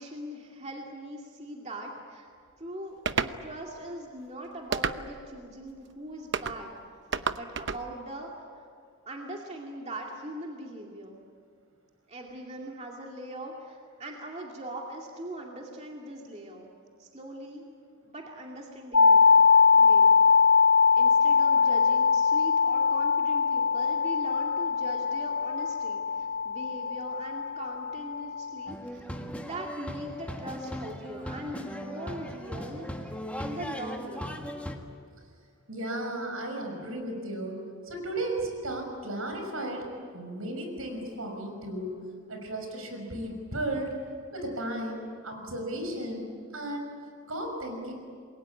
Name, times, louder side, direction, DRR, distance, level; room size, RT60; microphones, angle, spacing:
voice 1, 0.0-2.3 2.6-7.0 7.3-8.3 8.6-8.7 9.1-11.2 12.1-16.7 17.0-17.7 18.0-19.4 19.7-20.2 20.9-34.4, right 1 dB, 30° right, -1 dB, 2.4 m, -41 dB
sound 1, 3.1-3.4 4.7-5.3 6.3-6.6 7.1-7.8, right 5 dB, 55° right, 0.8 m, -30 dB
sound 2, 18.9-28.7, left 5 dB, 70° left, 4.3 m, -22 dB
sound 3, 28.7-34.7, left 1 dB, 5° left, 1.6 m, -38 dB
voice 2, 35.7-37.6 37.9-39.9 40.1-41.9 42.3-44.0 44.3-46.3 46.5-46.9 47.3-47.9, right 1 dB, 75° right, 3 dB, 5.9 m, -34 dB
28.0 x 21.5 x 8.6 m, 2.2 s
head